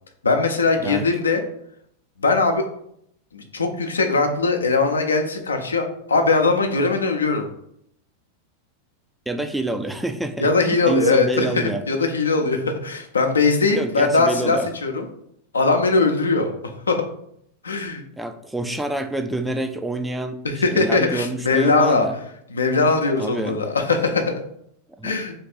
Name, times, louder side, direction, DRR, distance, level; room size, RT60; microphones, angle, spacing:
voice 1, 0.2-1.4 2.2-2.7 3.3-7.5 10.4-15.1 15.5-16.5 16.9-17.1 17.6-18.0 20.4-22.1 22.5-24.4 25.0-25.3, left 3 dB, 85° left, 4 dB, 0.5 m, -20 dB
voice 2, 9.3-11.8 13.7-14.7 18.2-22.1 23.2-23.6 25.0-25.2, right 2 dB, 5° right, 7 dB, 0.4 m, -27 dB
3.1 x 2.4 x 4.3 m, 0.72 s
hypercardioid pair, 95°, 0 cm